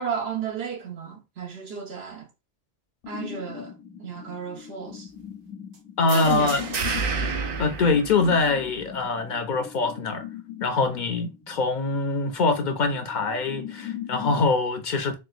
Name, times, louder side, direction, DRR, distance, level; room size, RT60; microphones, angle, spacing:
voice 1, 0.0-2.3 3.1-3.7 4.0-5.1 6.1-6.5, right 6 dB, 80° right, 1.2 m, -32 dB
sound 1, 3.0-14.5, left 9 dB, 80° left, 1.0 m, -40 dB
voice 2, 6.0-6.6 7.6-10.2 10.6-15.2, left 3 dB, 60° left, 0.6 m, -24 dB
sound 2, 6.1-8.8, right 5 dB, 65° right, 0.8 m, -30 dB
4.4 x 2.1 x 2.4 m
omnidirectional pair, 1.0 m